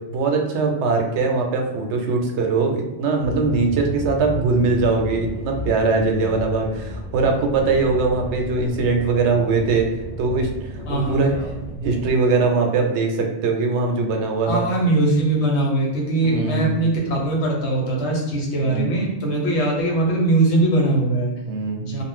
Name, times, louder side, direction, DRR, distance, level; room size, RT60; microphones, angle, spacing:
voice 1, 0.1-9.9 10.2-11.3 11.8-14.6 16.2-16.7 18.6-19.0 21.4-21.8, right 4 dB, 80° right, 2 dB, 0.9 m, -21 dB
sound 1, 3.2-12.1, equal, 45° left, 1.0 m, -33 dB
voice 2, 10.9-11.5 14.5-21.3 21.8-22.0, right 2 dB, 75° left, -2 dB, 1.1 m, -21 dB
2.5 x 2.0 x 3.6 m, 1.0 s
omnidirectional pair, 1.1 m